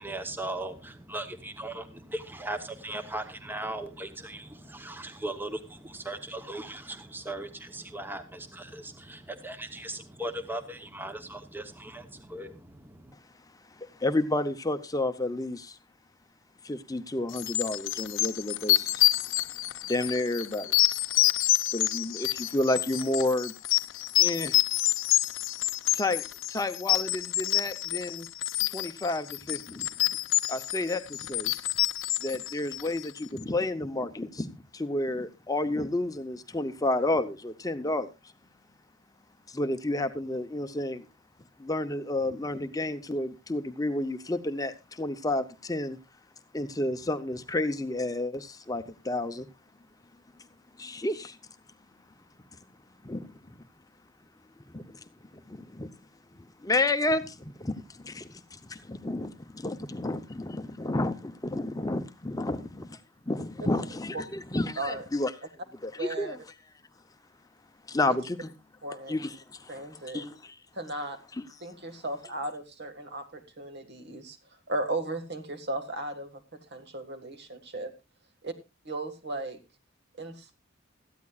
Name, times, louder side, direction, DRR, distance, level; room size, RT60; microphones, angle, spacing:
voice 1, 0.0-13.1, right 1 dB, 10° right, 8 dB, 0.9 m, -38 dB
voice 2, 13.7-15.8 16.6-19.5 19.8-20.8 21.7-23.5 24.2-24.6 25.9-26.2 26.5-28.3 28.7-29.9 30.5-31.5 32.2-38.1 39.5-41.1 41.6-46.0 46.5-49.5 50.8-51.4 53.0-53.6 54.7-55.0 55.3-55.9 56.3-63.0 63.3-65.3 65.8-66.4 67.9-68.5 69.1-70.6, left 2 dB, 20° left, 9 dB, 0.7 m, -31 dB
sound 1, 17.3-33.2, left 15 dB, 70° left, 0.6 m, -27 dB
voice 3, 66.0-66.4 68.8-69.2 69.7-70.3 70.8-71.2 71.6-74.4 74.7-77.9 78.4-78.5 78.9-79.6 80.2-80.5, right 2 dB, 55° right, 8 dB, 1.8 m, -36 dB
18.0 x 13.5 x 2.4 m, 0.26 s
head